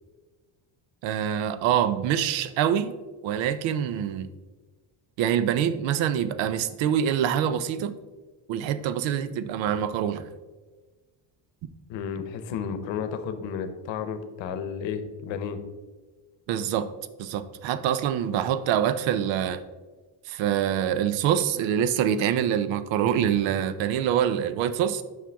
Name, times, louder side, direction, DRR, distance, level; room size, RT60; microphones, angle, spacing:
voice 1, 1.0-2.9 3.2-4.3 5.2-7.9 8.5-10.3 16.5-16.9 17.2-19.6 20.3-25.0, right 9 dB, 85° right, 13 dB, 0.6 m, -25 dB
voice 2, 11.9-15.6, left 7 dB, 80° left, 9 dB, 0.9 m, -32 dB
7.5 x 5.7 x 3.5 m, 1.3 s
cardioid pair, 155°, 44 cm